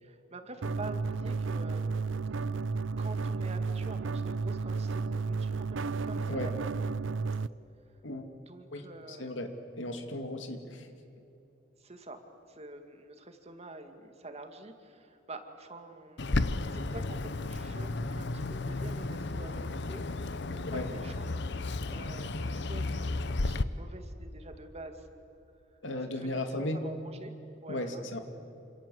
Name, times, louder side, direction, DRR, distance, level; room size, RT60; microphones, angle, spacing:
voice 1, 0.0-2.1 3.0-6.5 8.5-9.4 11.8-12.2 12.5-21.3 21.9-25.1 26.1-27.3 27.6-28.0, right 2 dB, 35° right, 6 dB, 2.2 m, -47 dB
sound 1, 0.6-7.5, right 4 dB, 85° right, 0.6 m, -32 dB
voice 2, 8.7-10.9 20.6-20.9 25.8-26.8 27.7-28.2, left 1 dB, 80° left, 6 dB, 2.5 m, -36 dB
Bird, 16.2-23.6, left 2 dB, 65° left, 0.9 m, -33 dB
28.0 x 27.0 x 7.8 m, 2.9 s
head